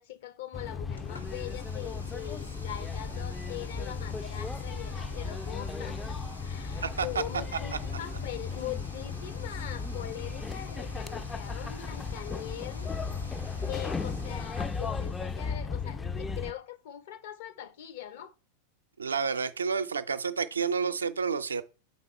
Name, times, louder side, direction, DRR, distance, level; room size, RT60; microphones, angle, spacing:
voice 1, 0.0-12.9 13.7-18.3, left 12 dB, 55° left, 0.6 m, -42 dB
sound 1, 0.5-16.5, left 5 dB, 10° left, 0.3 m, -36 dB
sound 2, 0.9-15.6, left 1 dB, 85° left, 0.8 m, -50 dB
voice 2, 6.8-7.2 19.0-21.6, right 5 dB, 75° right, 0.4 m, -30 dB
7.1 x 4.0 x 4.4 m
figure-of-eight pair, 90°, 0 cm